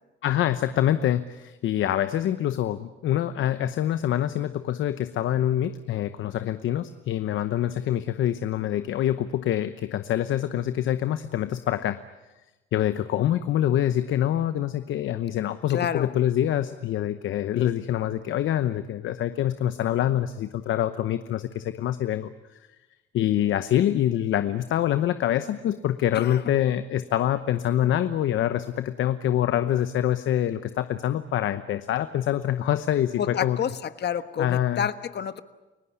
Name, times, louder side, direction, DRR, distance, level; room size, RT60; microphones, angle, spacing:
voice 1, 0.2-12.0 12.7-22.3 23.1-33.6 34.4-34.9, left 11 dB, 75° left, 11 dB, 1.0 m, -25 dB
voice 2, 15.7-16.1 26.1-26.4 33.2-35.4, left 8 dB, 60° left, 12 dB, 1.4 m, -29 dB
30.0 x 17.0 x 9.7 m, 1.1 s
cardioid pair, 90°, 20 cm